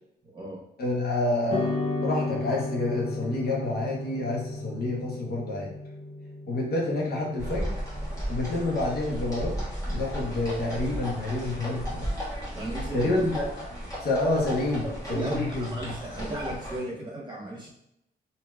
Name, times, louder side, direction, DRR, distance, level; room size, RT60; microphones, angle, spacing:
voice 1, 0.2-0.6 12.5-13.3 14.8-17.7, right 1 dB, 25° right, -4 dB, 1.2 m, -35 dB
voice 2, 0.8-5.7 6.5-7.7 8.3-9.6 9.9-12.1 12.9-13.4 14.0-16.0, left 2 dB, 60° left, -3 dB, 0.9 m, -28 dB
sound 1, 1.5-10.0, left 2 dB, 35° left, 0.5 m, -35 dB
sound 2, 7.4-16.8, equal, 20° left, 1.3 m, -35 dB
3.0 x 2.8 x 2.3 m, 0.80 s
cardioid pair, 85°, 18 cm